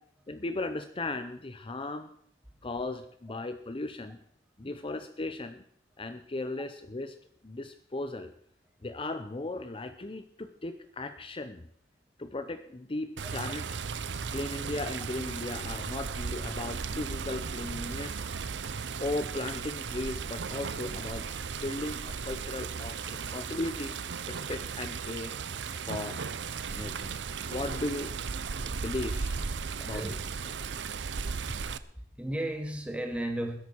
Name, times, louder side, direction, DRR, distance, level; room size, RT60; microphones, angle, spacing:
voice 1, 0.3-2.1 2.6-4.2 4.6-5.6 6.0-7.1 7.4-8.3 8.8-11.6 12.2-13.6 14.3-18.2 19.0-21.3 21.5-23.9 24.3-25.3 25.8-26.2 26.7-28.1 28.7-29.4 29.8-30.0, left 2 dB, 30° left, 10 dB, 0.7 m, -36 dB
Water, 13.2-31.8, right 5 dB, 80° right, 0.7 m, -36 dB
voice 2, 31.9-33.6, right 1 dB, 5° right, 3 dB, 2.4 m, -35 dB
20.5 x 11.0 x 4.6 m, 0.66 s
head